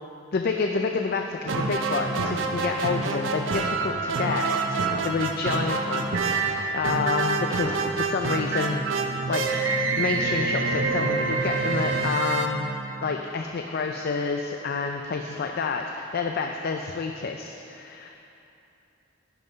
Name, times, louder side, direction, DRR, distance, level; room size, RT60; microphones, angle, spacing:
voice 1, 0.3-8.8 9.3-12.7 13.0-18.2, left 4 dB, 55° left, 4 dB, 0.4 m, -29 dB
sound 1, 1.5-13.3, right 3 dB, 70° right, 0.7 m, -27 dB
11.0 x 5.8 x 5.1 m, 2.9 s
head